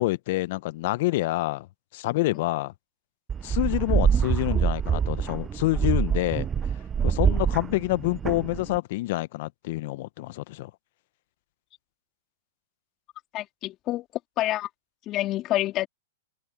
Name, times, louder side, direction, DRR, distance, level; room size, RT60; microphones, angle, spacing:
voice 1, 0.0-1.7 1.9-2.7 3.4-6.5 7.0-10.7, left 19 dB, 55° left, 1.2 m, -27 dB
sound 1, 3.3-8.8, right 7 dB, 20° right, 0.6 m, -25 dB
voice 2, 13.3-14.1 14.4-14.7 15.1-15.9, left 15 dB, 35° left, 3.4 m, -27 dB
hypercardioid pair, 110°, 0 cm